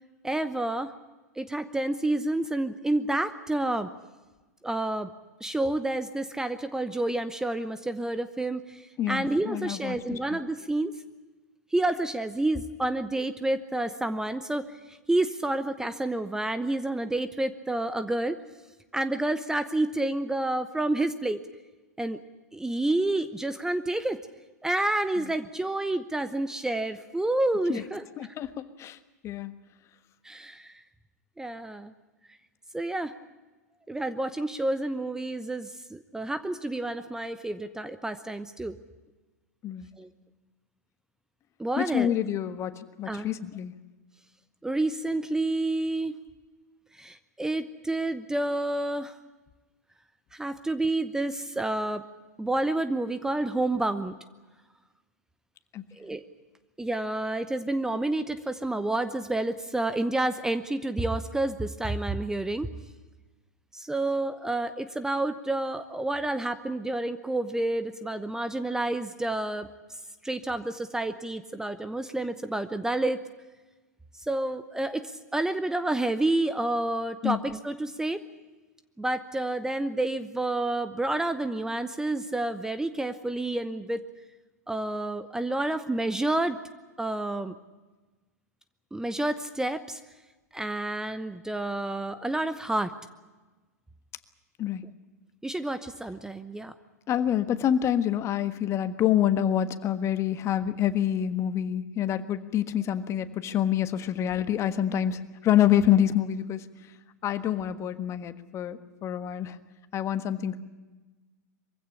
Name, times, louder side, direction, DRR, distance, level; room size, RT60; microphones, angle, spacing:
voice 1, 0.2-0.9 1.4-3.9 4.6-5.1 5.4-10.9 11.7-18.4 18.9-21.4 22.0-22.2 22.5-24.2 24.6-28.3 30.2-30.8 31.4-31.9 32.7-33.1 33.9-38.8 40.0-40.1 41.6-42.1 43.1-43.3 44.6-46.2 46.9-49.2 50.3-52.0 52.4-54.1 55.9-56.2 56.8-62.7 63.7-69.7 70.2-73.2 74.2-78.2 79.0-84.0 84.7-86.6 87.0-87.5 88.9-90.0 90.5-92.9 95.4-96.7, right 2 dB, 5° right, 11 dB, 0.9 m, -29 dB
voice 2, 9.0-10.4 27.7-27.8 28.2-29.0 29.2-29.6 39.6-39.9 41.8-43.7 55.7-55.8 77.2-77.4 94.6-94.8 97.1-106.7 107.2-109.6 109.9-110.6, left 10 dB, 30° left, 12 dB, 1.4 m, -27 dB
23.0 x 16.0 x 9.9 m, 1.2 s
figure-of-eight pair, 100°, 9 cm